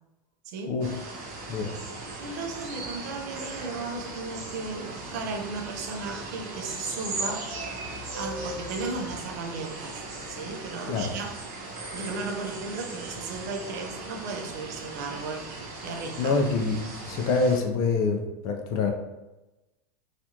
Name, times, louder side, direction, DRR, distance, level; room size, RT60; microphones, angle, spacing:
voice 1, 0.4-0.7 1.3-1.6 2.2-10.0 10.3-11.3 11.9-15.5 15.8-16.4, right 4 dB, 65° right, 3 dB, 0.6 m, -35 dB
sound 1, 0.8-17.6, right 2 dB, 40° right, 0.9 m, -38 dB
voice 2, 16.2-18.9, left 4 dB, 35° left, 4 dB, 0.4 m, -26 dB
4.3 x 2.4 x 2.8 m, 1.0 s
supercardioid pair, 160°, 10 cm